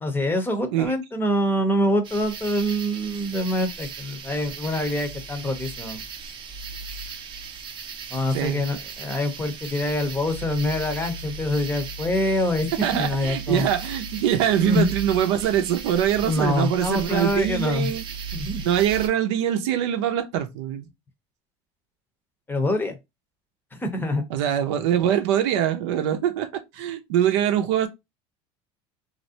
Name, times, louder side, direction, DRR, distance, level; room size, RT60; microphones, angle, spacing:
voice 1, 0.0-6.0 8.1-13.7 14.6-14.9 16.2-17.9 18.3-18.6 22.5-23.0 23.8-24.2, left 1 dB, 15° left, 0.7 m, -25 dB
sound 1, 2.0-19.1, right 5 dB, 35° right, 0.6 m, -36 dB
voice 2, 12.8-18.0 18.6-20.9 24.3-27.9, right 10 dB, 85° right, 0.6 m, -23 dB
3.1 x 2.5 x 2.7 m
supercardioid pair, 125°, 14 cm